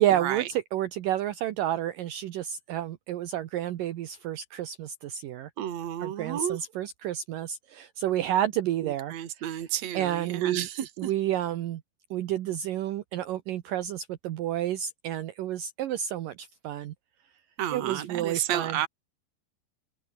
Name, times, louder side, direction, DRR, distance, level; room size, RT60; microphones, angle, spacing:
voice 1, 0.0-5.5 6.0-9.7 9.9-10.7 11.0-11.8 12.1-16.9 17.7-18.8, right 12 dB, 75° right, 2.0 m, -30 dB
voice 2, 5.6-6.6 8.8-11.1 17.6-18.9, right 11 dB, 50° right, 2.2 m, -31 dB
omnidirectional pair, 5.5 m